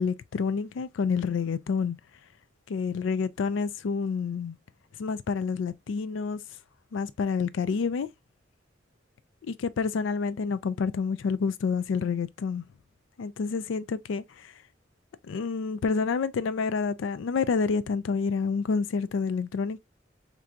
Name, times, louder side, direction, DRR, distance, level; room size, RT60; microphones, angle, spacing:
voice 1, 0.0-2.0 2.7-4.6 5.0-6.4 6.9-8.1 9.5-12.6 13.2-14.5 15.3-19.8, left 5 dB, 70° left, 0.4 m, -28 dB
4.4 x 2.6 x 2.3 m
head